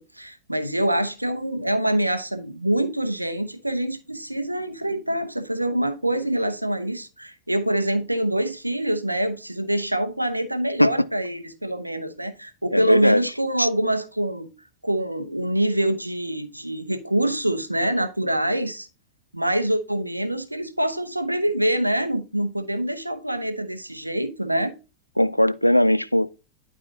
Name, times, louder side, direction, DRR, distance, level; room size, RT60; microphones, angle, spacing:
voice 1, 0.1-14.5 14.8-18.9 19.3-24.7, right 1 dB, 85° right, 0.9 m, -25 dB
voice 2, 12.7-13.2 13.6-13.7 25.2-26.3, left 1 dB, 90° left, 0.4 m, -19 dB
11.5 x 4.7 x 2.8 m
figure-of-eight pair, 90°, 0 cm